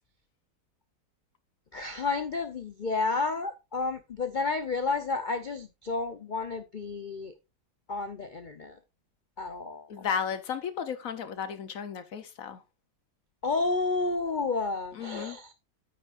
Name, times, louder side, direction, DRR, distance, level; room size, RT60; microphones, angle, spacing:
voice 1, 1.7-7.4 7.9-8.8 9.4-10.1 13.4-15.5, left 3 dB, 90° left, 0.4 m, -31 dB
voice 2, 9.9-12.6 14.9-15.4, left 7 dB, 60° left, 1.0 m, -34 dB
9.1 x 9.0 x 2.5 m
omnidirectional pair, 1.9 m